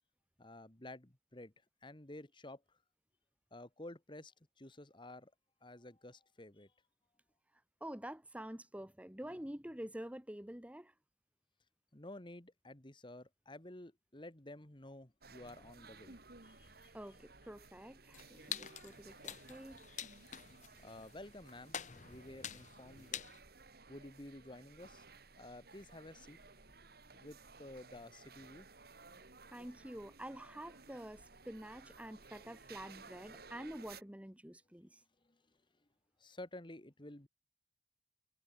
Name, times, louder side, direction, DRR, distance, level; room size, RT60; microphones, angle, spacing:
voice 1, 0.4-1.5 1.8-2.8 3.5-5.3 5.6-6.7 11.9-16.2 16.4-16.9 20.8-21.8 22.0-23.3 23.9-25.0 25.4-26.4 27.1-28.7 35.2-35.4 36.2-37.3, left 1 dB, 30° left, 2.0 m, -52 dB
voice 2, 7.8-10.9 16.9-19.9 29.5-35.0, right 1 dB, 10° right, 1.4 m, -48 dB
sound 1, 15.2-34.0, right 4 dB, 60° right, 3.5 m, -58 dB
sound 2, 18.1-23.4, left 9 dB, 45° left, 1.0 m, -47 dB
head